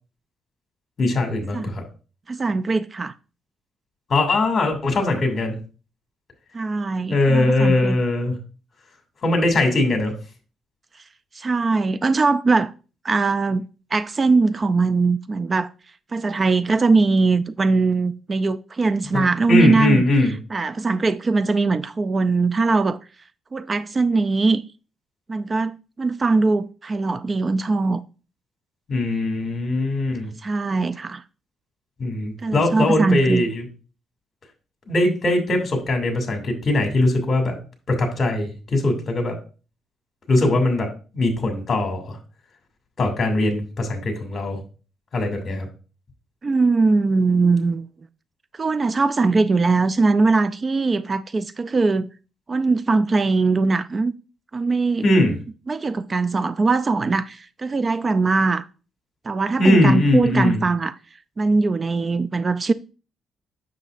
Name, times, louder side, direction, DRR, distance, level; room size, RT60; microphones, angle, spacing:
voice 1, 1.0-1.8 4.1-5.6 7.1-8.3 9.2-10.1 19.1-20.4 28.9-30.3 32.0-33.6 34.9-37.5 37.9-39.4 40.3-42.2 43.0-44.6 45.1-45.7 55.0-55.4 59.6-60.6, left 2 dB, 40° left, 2.4 m, -21 dB
voice 2, 2.3-3.1 6.5-8.0 11.3-12.7 13.0-13.7 13.9-15.7 16.1-20.0 20.5-23.0 23.5-24.6 25.3-28.0 30.4-31.2 32.4-33.4 46.4-47.9 48.5-52.1 52.5-54.1 54.5-55.1 55.7-58.7 59.3-60.9 61.4-62.7, right 3 dB, 30° right, 0.4 m, -21 dB
7.9 x 6.7 x 2.5 m
cardioid pair, 90°, 0 cm